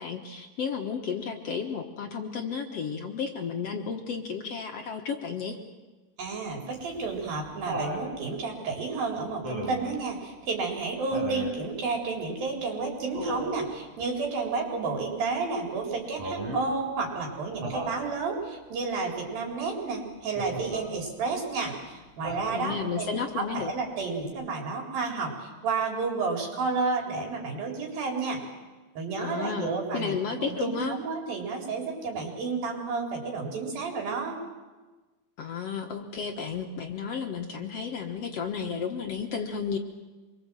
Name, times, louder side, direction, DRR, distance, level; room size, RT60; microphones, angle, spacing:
voice 1, 0.0-5.6 22.5-23.7 29.2-31.0 35.4-39.8, left 6 dB, 55° left, 3 dB, 1.9 m, -33 dB
voice 2, 6.2-28.4 29.0-34.4, right 4 dB, 85° right, 1 dB, 5.7 m, -31 dB
Laughter, 6.7-8.1 9.4-9.9 11.1-11.6 13.1-13.7 16.2-16.7 17.6-18.0 20.4-20.9 22.2-22.9 24.3-24.4, right 1 dB, 45° right, 6.2 m, -35 dB
26.0 x 22.0 x 7.6 m, 1.2 s
omnidirectional pair, 4.0 m